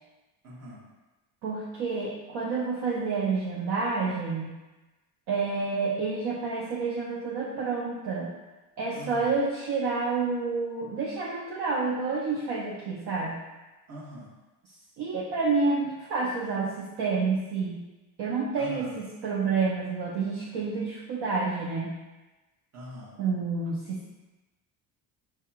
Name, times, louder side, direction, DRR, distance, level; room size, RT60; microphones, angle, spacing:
voice 1, 0.4-0.9 8.9-9.3 13.9-14.3 18.6-19.0 22.7-23.2, equal, 30° right, -4 dB, 1.2 m, -42 dB
voice 2, 1.4-4.5 5.3-8.3 8.8-13.3 15.0-17.8 18.2-21.9 23.2-24.1, right 4 dB, 50° right, -4 dB, 0.7 m, -29 dB
4.7 x 2.8 x 2.3 m, 1.1 s
hypercardioid pair, 70°, 50 cm